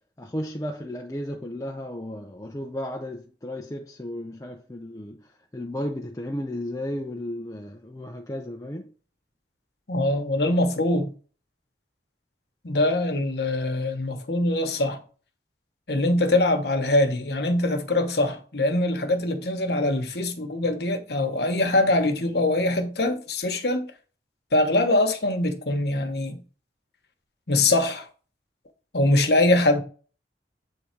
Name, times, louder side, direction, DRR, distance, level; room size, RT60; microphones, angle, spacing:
voice 1, 0.2-5.2 5.5-8.9, left 1 dB, 20° left, 0.6 m, -34 dB
voice 2, 9.9-11.1 12.6-15.0 15.9-23.9 24.5-26.4 27.5-28.1 28.9-29.8, left 2 dB, 65° left, 1.2 m, -23 dB
8.4 x 3.9 x 4.5 m
head